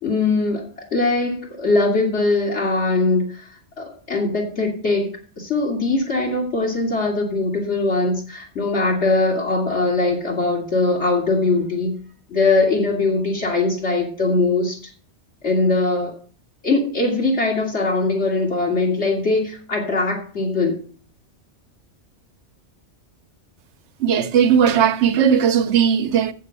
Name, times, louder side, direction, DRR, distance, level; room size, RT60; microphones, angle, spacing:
voice 1, 0.0-3.5 3.8-5.1 5.4-12.0 12.3-14.8 15.4-16.1 16.6-20.8, left 3 dB, 70° left, 2.4 m, -21 dB
voice 2, 24.0-26.3, right 8 dB, 75° right, 1.1 m, -17 dB
7.8 x 7.3 x 8.1 m
omnidirectional pair, 1.2 m